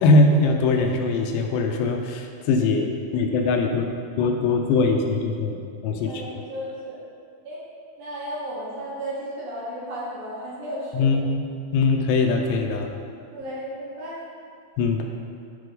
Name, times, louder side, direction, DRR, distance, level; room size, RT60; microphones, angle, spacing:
voice 1, 0.0-2.9 3.1-3.9 4.2-6.4 10.9-11.4 11.7-12.9 14.8-15.0, left 3 dB, 80° left, 3 dB, 2.9 m, -21 dB
voice 2, 6.0-7.0 7.4-7.6 8.0-11.2 13.3-14.2, equal, 75° right, -8 dB, 4.3 m, -34 dB
13.5 x 4.9 x 3.9 m, 2.3 s
omnidirectional pair, 5.0 m